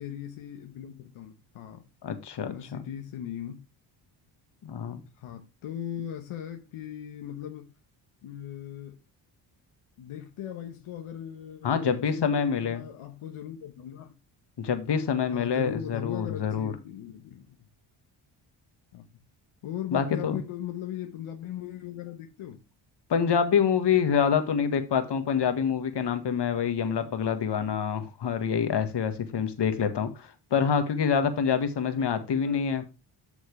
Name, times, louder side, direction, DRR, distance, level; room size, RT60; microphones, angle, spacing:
voice 1, 0.0-1.8 2.4-3.6 5.2-7.7 8.2-9.0 10.0-14.1 15.2-17.6 18.9-19.1 19.6-22.6 32.4-32.8, left 10 dB, 75° left, 1.3 m, -39 dB
voice 2, 2.0-2.8 4.6-5.0 11.6-12.8 14.6-16.7 19.9-20.4 23.1-32.8, left 7 dB, 55° left, 1.7 m, -26 dB
8.5 x 6.4 x 3.2 m
cardioid pair, 65°, 50 cm